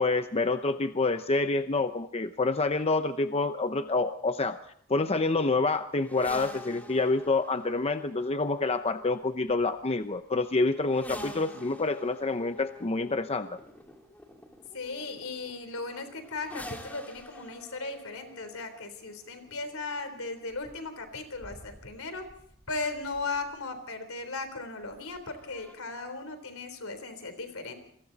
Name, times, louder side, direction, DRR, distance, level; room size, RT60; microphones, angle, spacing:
voice 1, 0.0-4.6 4.9-13.5, left 3 dB, 30° left, 9 dB, 0.7 m, -27 dB
sound 1, 6.0-23.7 24.8-25.7, left 1 dB, 10° left, 3.2 m, -48 dB
voice 2, 14.7-22.3 22.7-27.7, left 3 dB, 75° left, 9 dB, 3.8 m, -37 dB
28.0 x 22.5 x 4.1 m, 0.67 s
head